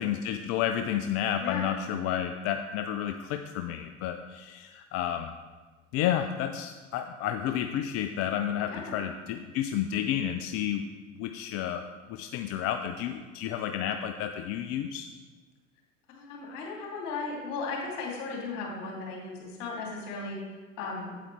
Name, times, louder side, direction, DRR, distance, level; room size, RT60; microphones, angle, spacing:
voice 1, 0.0-5.3 5.9-10.8 11.2-15.1, left 10 dB, 40° left, 7 dB, 0.5 m, -31 dB
voice 2, 8.6-9.0 16.1-20.4 20.8-21.1, left 4 dB, 55° left, -2 dB, 2.8 m, -36 dB
8.6 x 8.4 x 3.3 m, 1.4 s
figure-of-eight pair, 75°, 37 cm